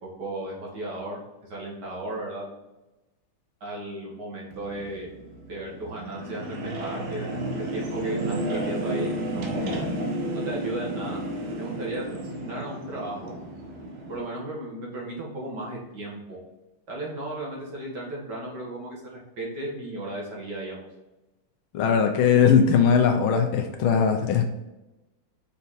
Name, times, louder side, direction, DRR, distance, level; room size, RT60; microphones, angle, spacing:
voice 1, 0.0-2.5 3.6-5.1 5.5-9.7 10.3-11.3 11.6-13.4 14.1-16.4 16.9-20.9, right 1 dB, 55° right, -3 dB, 2.1 m, -35 dB
sound 1, 4.5-14.3, right 1 dB, 75° right, 1.7 m, -32 dB
voice 2, 21.7-24.4, left 6 dB, 75° left, 5 dB, 1.4 m, -20 dB
5.6 x 4.2 x 4.1 m, 1.0 s
omnidirectional pair, 2.4 m